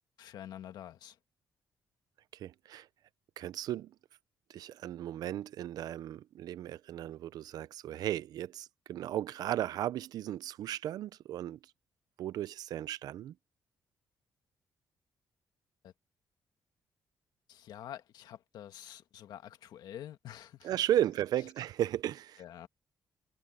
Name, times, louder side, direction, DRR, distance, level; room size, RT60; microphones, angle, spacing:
voice 1, 0.2-1.2 15.8-15.9 17.5-20.7 22.4-22.7, left 11 dB, 75° left, 1.7 m, -47 dB
voice 2, 2.3-2.9 3.4-3.9 4.5-11.7 12.2-13.3 20.6-22.4, right 12 dB, 65° right, 0.4 m, -35 dB
cardioid pair, 170°, 7 cm